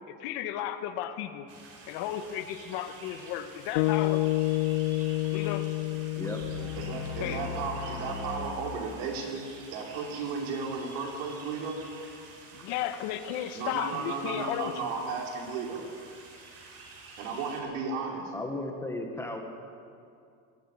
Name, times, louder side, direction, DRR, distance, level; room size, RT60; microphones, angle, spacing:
voice 1, 0.0-1.5 1.9-4.2 5.3-5.7 7.2-7.5 12.5-14.9, left 11 dB, 60° left, 9 dB, 1.6 m, -34 dB
sound 1, 1.5-17.6, right 3 dB, 35° right, 4.5 m, -49 dB
sound 2, 3.7-8.1, left 17 dB, 90° left, 0.8 m, -29 dB
sound 3, 6.4-9.7, left 3 dB, 10° right, 4.9 m, -39 dB
voice 2, 6.7-11.8 13.5-15.8 17.2-18.3, right 4 dB, 75° right, 1 dB, 4.9 m, -34 dB
voice 3, 18.3-19.4, left 1 dB, 5° left, 3 dB, 1.5 m, -35 dB
21.5 x 15.0 x 9.9 m, 2.4 s
cardioid pair, 175°, 41 cm